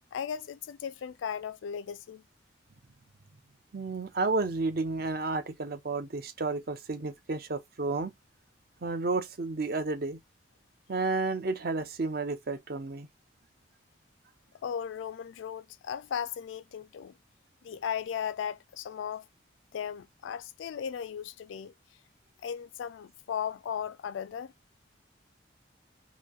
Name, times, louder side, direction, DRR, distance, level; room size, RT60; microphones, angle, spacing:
voice 1, 0.1-2.2 14.6-17.1 17.6-19.3 19.7-21.7 22.4-24.5, left 8 dB, 80° left, 0.3 m, -36 dB
voice 2, 3.7-8.1 8.8-10.2 10.9-13.1, right 3 dB, 50° right, 0.6 m, -31 dB
2.9 x 2.6 x 2.3 m
head